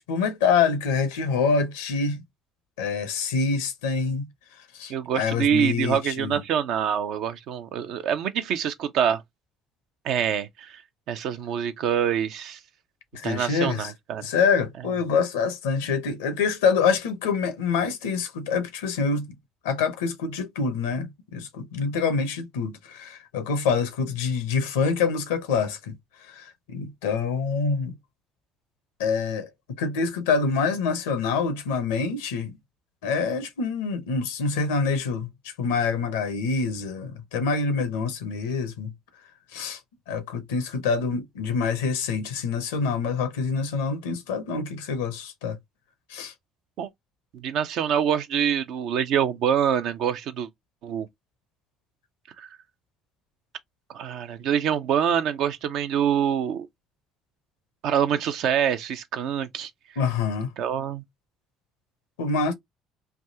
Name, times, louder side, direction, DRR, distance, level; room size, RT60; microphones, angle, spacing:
voice 1, 0.1-2.2 2.8-4.3 4.7-6.4 13.1-13.9 14.2-19.3 19.6-26.0 26.2-28.0 29.0-29.5 29.8-32.6 33.0-38.9 39.5-39.8 40.1-45.6 46.1-46.3 60.0-60.5 62.2-62.5, left 5 dB, 85° left, 0.6 m, -26 dB
voice 2, 4.9-9.2 10.0-10.8 11.1-12.6 13.2-14.3 46.8-46.9 47.3-50.5 50.8-51.1 52.4-52.5 53.9-56.7 57.8-59.7 60.6-61.0, right 8 dB, 70° right, 0.5 m, -25 dB
3.4 x 2.3 x 2.7 m
hypercardioid pair, 65°, 0 cm